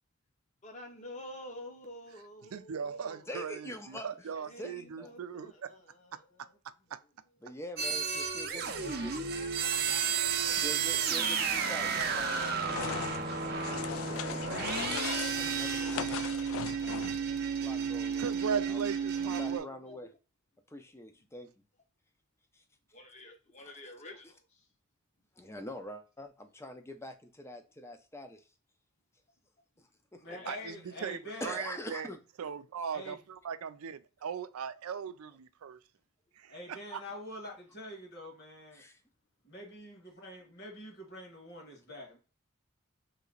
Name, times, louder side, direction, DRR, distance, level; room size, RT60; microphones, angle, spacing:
voice 1, 0.6-3.2 4.5-6.5 8.5-10.6 19.9-20.0 22.9-24.4 30.3-30.7, left 1 dB, 35° left, 0.8 m, -49 dB
voice 2, 2.4-5.7 6.1-6.2 6.9-7.0 18.2-19.7 30.5-32.1 32.4-35.8 36.4-37.0, right 7 dB, 90° right, 0.4 m, -38 dB
voice 3, 3.3-4.1 4.6-5.2 7.4-9.1 10.5-13.0 13.4-16.2 17.6-18.8 19.2-20.2 20.7-21.5 22.5-22.6 23.6-24.3 25.4-28.4 29.8-30.3 31.4-32.2 38.7-39.0, left 1 dB, 10° left, 0.5 m, -45 dB
sound 1, 7.8-19.6, right 6 dB, 45° right, 0.6 m, -32 dB
sound 2, 12.0-17.3, left 8 dB, 80° left, 0.3 m, -39 dB
voice 4, 30.2-31.6 32.9-33.2 36.5-38.8 39.4-42.2, left 1 dB, 50° left, 1.6 m, -45 dB
3.2 x 2.9 x 3.8 m
head